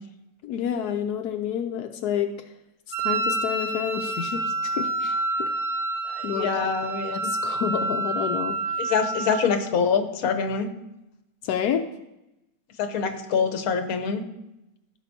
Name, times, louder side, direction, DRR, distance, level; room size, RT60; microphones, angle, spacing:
voice 1, 0.4-2.3 3.0-5.5 6.2-6.7 7.1-8.6 11.4-11.9, left 9 dB, 90° left, 5 dB, 1.2 m, -29 dB
Wind instrument woodwind instrument, 2.9-9.5, right 2 dB, 50° right, 0.9 m, -28 dB
voice 2, 6.1-7.3 8.8-10.7 12.8-14.2, left 6 dB, 70° left, 6 dB, 1.4 m, -25 dB
16.0 x 6.7 x 2.7 m, 0.90 s
omnidirectional pair, 1.6 m